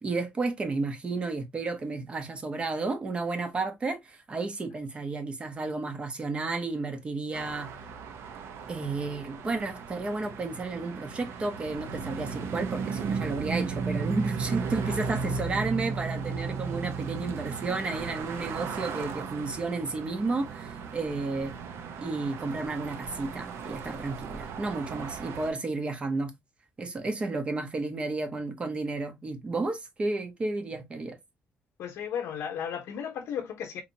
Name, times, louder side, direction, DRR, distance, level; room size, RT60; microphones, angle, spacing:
voice 1, 0.0-7.7 8.7-21.5 22.0-26.3 26.8-31.2, right 3 dB, 25° right, 0.7 m, -32 dB
sound 1, 7.3-25.5, right 5 dB, 70° right, 0.6 m, -35 dB
voice 2, 14.8-15.1 31.8-33.8, left 8 dB, 80° left, 0.6 m, -35 dB
4.0 x 2.7 x 2.6 m
cardioid pair, 175°, 4 cm